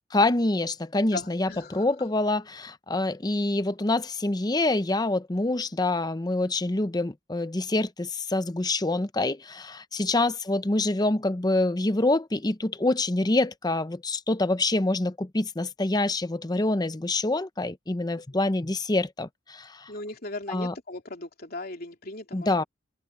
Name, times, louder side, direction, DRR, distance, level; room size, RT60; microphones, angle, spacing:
voice 1, 0.1-19.9 20.5-20.7 22.3-22.6, left 2 dB, 20° left, 0.7 m, -26 dB
voice 2, 1.1-1.8 2.9-3.0 10.0-10.3 19.9-22.5, left 2 dB, 55° left, 3.1 m, -38 dB
head